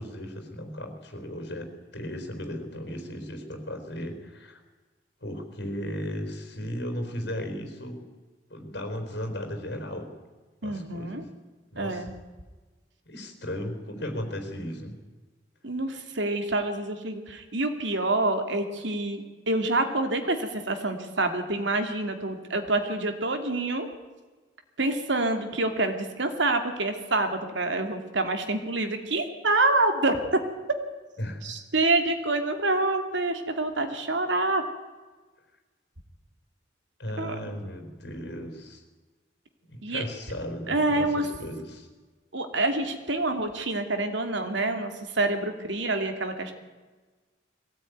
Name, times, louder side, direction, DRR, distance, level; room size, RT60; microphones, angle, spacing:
voice 1, 0.0-4.6 5.2-8.1 8.5-10.1 10.6-11.2 11.7-12.1 13.1-15.0 31.2-31.4 37.0-38.8 39.6-41.9, equal, 65° left, 6 dB, 4.3 m, -36 dB
voice 2, 10.6-11.2 11.8-12.1 15.6-23.9 24.8-30.2 31.4-34.6 37.2-37.5 39.8-40.1 40.7-41.3 42.3-46.5, right 2 dB, 75° right, 6 dB, 2.6 m, -27 dB
21.5 x 17.0 x 9.4 m, 1.3 s
head